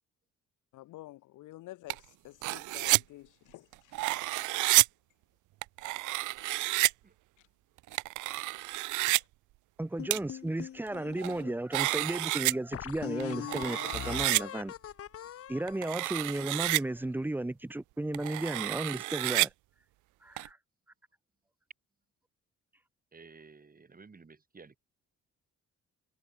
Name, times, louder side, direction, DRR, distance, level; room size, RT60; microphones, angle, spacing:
voice 1, 0.7-3.7 4.1-4.2 9.1-9.2, left 17 dB, 90° left, 1.5 m, -50 dB
sound 1, 1.9-2.0 2.4-3.0 3.7-4.9 5.6-6.9 7.9-9.2 10.1-10.2 10.9-11.4 11.7-12.5 13.2-14.4 15.7-16.8 18.1-19.5 20.4-20.5, right 19 dB, 85° right, 0.5 m, -29 dB
voice 2, 9.8-14.7 15.5-19.5 20.2-20.6, right 1 dB, 5° right, 0.7 m, -34 dB
sound 2, 10.0-11.5 12.1-12.2 12.7-16.9, left 10 dB, 50° left, 0.8 m, -41 dB
voice 3, 23.1-24.8, right 4 dB, 30° right, 4.1 m, -54 dB
cardioid pair, 90°, 30 cm